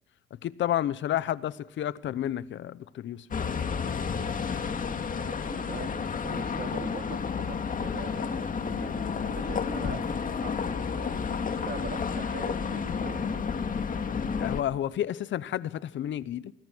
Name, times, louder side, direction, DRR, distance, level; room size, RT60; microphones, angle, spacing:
voice 1, 0.4-3.3 14.4-16.5, left 11 dB, 70° left, 0.9 m, -31 dB
sound 1, 3.3-14.6, left 6 dB, 45° left, 2.2 m, -31 dB
voice 2, 5.0-5.9 6.1-10.0 10.4-13.5, right 6 dB, 50° right, 4.1 m, -43 dB
25.0 x 24.0 x 6.2 m
cardioid pair, 90°, 20 cm